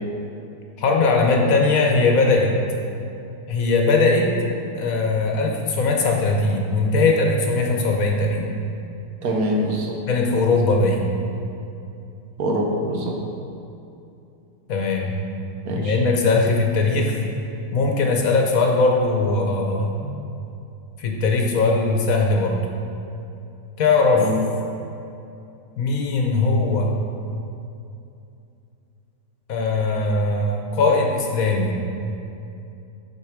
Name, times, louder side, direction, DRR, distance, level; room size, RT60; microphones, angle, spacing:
voice 1, 0.8-2.6 3.5-4.3 4.7-8.5 10.1-11.0 14.7-15.2 15.7-17.2 17.7-19.9 21.0-22.6 23.8-24.3 25.8-26.9 29.5-31.8, left 3 dB, 60° left, 1 dB, 1.1 m, -20 dB
voice 2, 9.2-10.0 12.4-13.2 15.6-15.9 20.0-20.1 24.1-24.3, right 1 dB, 65° right, 0 dB, 1.3 m, -24 dB
8.4 x 4.2 x 4.9 m, 2.7 s
omnidirectional pair, 1.8 m